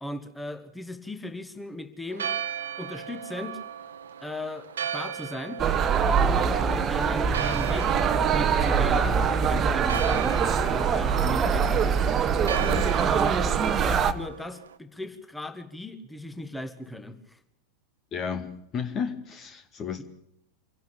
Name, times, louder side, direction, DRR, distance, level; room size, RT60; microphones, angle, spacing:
voice 1, 0.0-2.3 2.8-3.6 4.2-5.6 6.2-8.0 8.3-9.1 9.4-12.0 12.4-12.6 13.0-13.4 13.8-17.4, left 1 dB, 5° left, 9 dB, 1.8 m, -37 dB
Church bell, 2.1-14.8, right 8 dB, 65° right, 1.2 m, -37 dB
sound 1, 5.6-14.1, right 6 dB, 25° right, 1.3 m, -23 dB
voice 2, 12.6-12.9 18.1-20.0, left 6 dB, 25° left, 9 dB, 1.5 m, -33 dB
25.5 x 11.5 x 8.9 m, 0.76 s
figure-of-eight pair, 90°, 0 cm